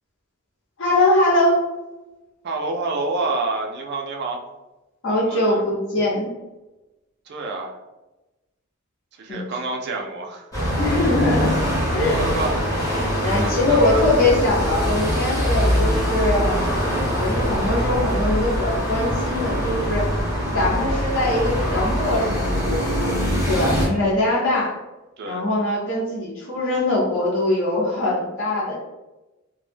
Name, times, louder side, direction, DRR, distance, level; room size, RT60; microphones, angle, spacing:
voice 1, 0.8-1.6 5.0-6.3 9.3-9.4 10.8-11.6 11.9-12.2 13.2-16.6 17.2-20.1 20.5-23.1 23.5-24.8 25.2-28.8, left 1 dB, 60° left, -6 dB, 0.7 m, -22 dB
voice 2, 2.4-4.4 5.1-5.6 7.3-7.8 9.1-10.5 11.0-11.1 12.1-12.6 13.4-14.1 25.2-25.4, right 3 dB, 50° right, 2 dB, 0.4 m, -28 dB
sound 1, 10.5-23.9, equal, 15° left, 0.7 m, -23 dB
2.1 x 2.0 x 3.2 m, 1.0 s
head